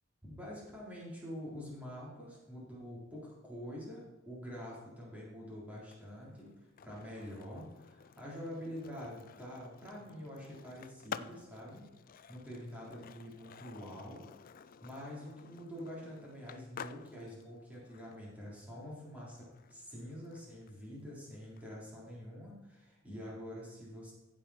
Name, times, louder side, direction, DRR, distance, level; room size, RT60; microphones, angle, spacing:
voice 1, 0.2-6.5 6.8-11.9 12.3-14.3 14.8-24.1, equal, 5° right, -6 dB, 3.7 m, -46 dB
Skateboard, 5.8-21.6, left 7 dB, 45° left, 0.4 m, -52 dB
15.0 x 7.5 x 4.3 m, 1.1 s
head